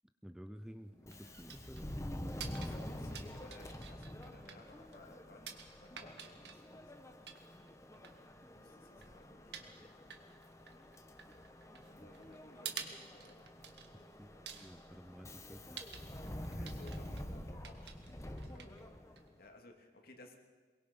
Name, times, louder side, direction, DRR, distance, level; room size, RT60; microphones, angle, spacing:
voice 1, 0.2-2.9 9.8-9.9 12.0-12.1 14.2-15.8, equal, 5° right, 9 dB, 0.6 m, -53 dB
sound 1, 0.6-19.6, right 7 dB, 70° right, 1.8 m, -52 dB
Subway metro underground, 1.0-19.4, left 1 dB, 15° left, 1.3 m, -48 dB
voice 2, 2.3-6.9 8.6-9.6 11.9-13.5 13.9-14.1 16.3-20.4, left 2 dB, 55° left, 3 dB, 2.7 m, -60 dB
22.5 x 22.5 x 5.5 m, 1.4 s
head